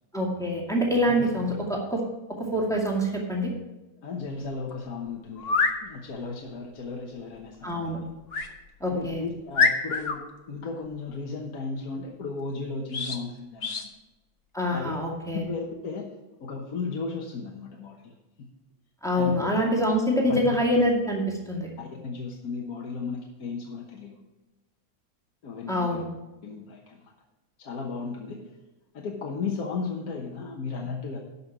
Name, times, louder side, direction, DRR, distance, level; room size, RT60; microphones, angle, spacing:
voice 1, 0.1-2.0 2.4-3.5 7.6-8.0 8.8-9.2 14.5-15.4 19.0-21.7 25.7-26.0, equal, ahead, -2 dB, 2.2 m, -25 dB
voice 2, 4.0-7.9 8.9-13.9 14.7-15.0 15.5-16.1 16.4-18.5 19.1-19.3 20.3-20.6 21.8-24.2 25.4-26.0 26.4-27.1 27.6-28.6 28.9-31.2, left 4 dB, 80° left, 0 dB, 1.7 m, -35 dB
sound 1, 5.4-5.8 8.3-8.5 9.0-9.1 9.5-10.2 12.9-13.2 13.6-13.9, left 4 dB, 45° left, 1.1 m, -25 dB
12.5 x 5.8 x 6.1 m, 1.1 s
omnidirectional pair, 1.6 m